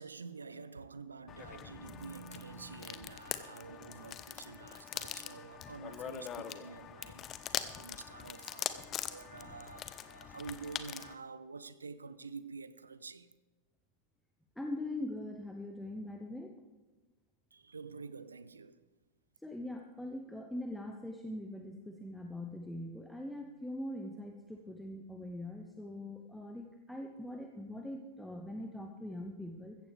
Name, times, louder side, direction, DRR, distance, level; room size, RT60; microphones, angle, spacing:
voice 1, 0.0-13.3 17.5-18.8, right 4 dB, 75° right, 0.6 m, -48 dB
sound 1, 1.3-11.1, left 9 dB, 30° left, 0.7 m, -43 dB
voice 2, 14.6-16.5 19.4-29.8, left 1 dB, 5° left, 0.9 m, -42 dB
15.5 x 14.5 x 3.5 m
figure-of-eight pair, 90°, 0 cm